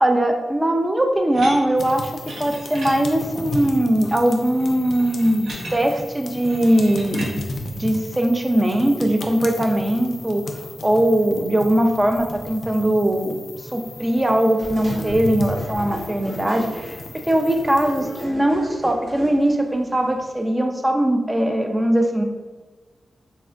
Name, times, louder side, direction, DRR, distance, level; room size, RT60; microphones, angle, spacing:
voice 1, 0.0-2.1 2.4-7.4 7.8-10.4 10.8-13.4 13.7-22.2, right 1 dB, 15° right, 5 dB, 0.3 m, -20 dB
sound 1, 1.3-7.3, right 1 dB, 85° right, 0.8 m, -37 dB
sound 2, 1.8-18.2, left 2 dB, 60° left, 0.4 m, -35 dB
sound 3, 13.5-20.5, equal, 55° right, 1.0 m, -37 dB
4.2 x 2.4 x 2.2 m, 1.3 s
wide cardioid pair, 140°, 0 cm